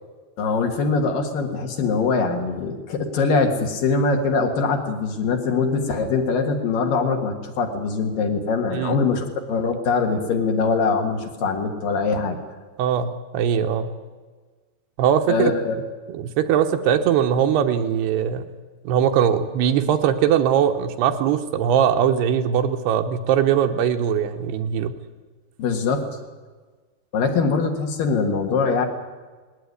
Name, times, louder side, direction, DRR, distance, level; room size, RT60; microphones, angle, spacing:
voice 1, 0.4-12.4 15.3-15.8 25.6-26.0 27.1-28.9, left 4 dB, 60° left, 4 dB, 3.2 m, -22 dB
voice 2, 12.8-13.9 15.0-15.5 16.1-18.4 18.8-24.9, right 9 dB, 75° right, 6 dB, 3.1 m, -20 dB
20.0 x 17.5 x 9.7 m, 1.4 s
omnidirectional pair, 4.9 m